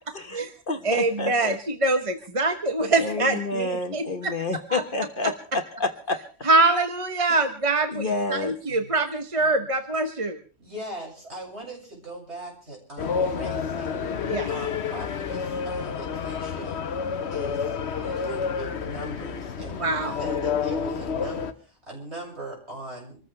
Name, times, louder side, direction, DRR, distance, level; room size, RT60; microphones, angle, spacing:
voice 1, 0.1-1.6 3.0-6.2 7.9-8.5, left 3 dB, 45° left, 7 dB, 1.4 m, -29 dB
voice 2, 0.8-4.3 4.7-4.8 6.4-10.4 14.3-14.5 18.0-18.1 19.8-20.1, right 2 dB, 30° right, 7 dB, 1.1 m, -24 dB
voice 3, 10.6-16.8 17.3-17.8 18.2-23.2, right 1 dB, 65° right, -2 dB, 7.2 m, -40 dB
sound 1, 13.0-21.5, left 6 dB, 65° left, 1.2 m, -29 dB
26.5 x 14.5 x 3.4 m, 0.39 s
omnidirectional pair, 1.2 m